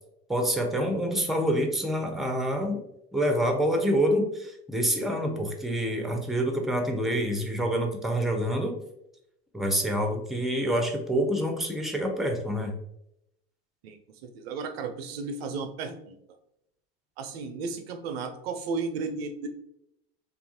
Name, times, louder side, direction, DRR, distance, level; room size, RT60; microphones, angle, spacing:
voice 1, 0.3-2.8 3.1-8.7 9.5-12.7, equal, ahead, 4 dB, 0.5 m, -27 dB
voice 2, 13.8-16.2 17.2-19.5, right 4 dB, 80° right, 7 dB, 0.5 m, -34 dB
2.7 x 2.3 x 2.6 m, 0.80 s
hypercardioid pair, 80°, 30 cm